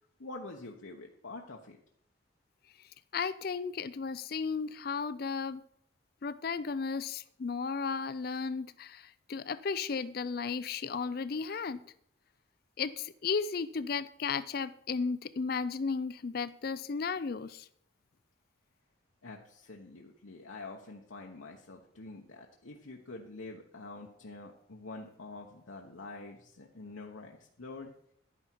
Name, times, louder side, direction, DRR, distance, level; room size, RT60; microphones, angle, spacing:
voice 1, 0.2-1.8 19.2-27.9, left 3 dB, 85° left, 1 dB, 1.0 m, -46 dB
voice 2, 3.1-5.6 6.2-11.8 12.8-17.7, left 5 dB, 50° left, 16 dB, 0.4 m, -34 dB
11.0 x 9.7 x 4.6 m, 0.69 s
head